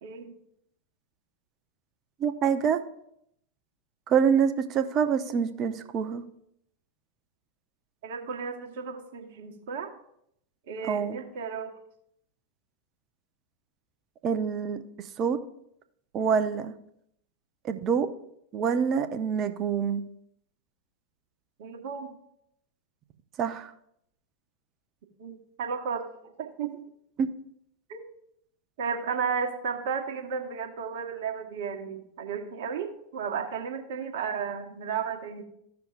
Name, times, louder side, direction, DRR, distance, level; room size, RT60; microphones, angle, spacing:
voice 1, 0.0-0.3 8.0-9.9 10.7-11.7 21.6-22.1 25.2-26.8 27.9-28.0 28.8-35.4, right 6 dB, 60° right, 3 dB, 1.2 m, -33 dB
voice 2, 2.2-2.8 4.1-6.2 10.9-11.2 14.2-14.8 15.2-15.4 16.1-16.7 17.6-18.1 18.5-20.0 23.4-23.7 27.2-27.3, right 7 dB, 35° right, 8 dB, 0.8 m, -26 dB
15.0 x 5.8 x 2.5 m, 0.74 s
figure-of-eight pair, 90°, 0 cm